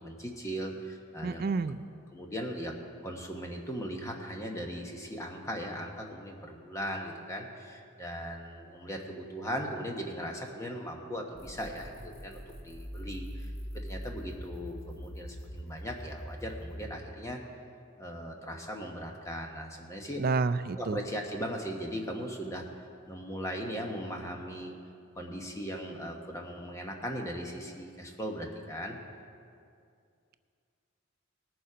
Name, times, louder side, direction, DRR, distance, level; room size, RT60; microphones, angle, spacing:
voice 1, 0.0-1.5 2.1-2.7 3.0-13.5 13.8-17.4 18.0-20.2 20.8-24.8 25.2-29.0, equal, 15° left, 1 dB, 1.1 m, -38 dB
voice 2, 1.2-1.9 20.2-21.0, right 4 dB, 45° right, 11 dB, 0.3 m, -29 dB
sound 1, 11.3-16.9, equal, 85° left, 2.1 m, -42 dB
18.5 x 7.0 x 5.0 m, 2.4 s
head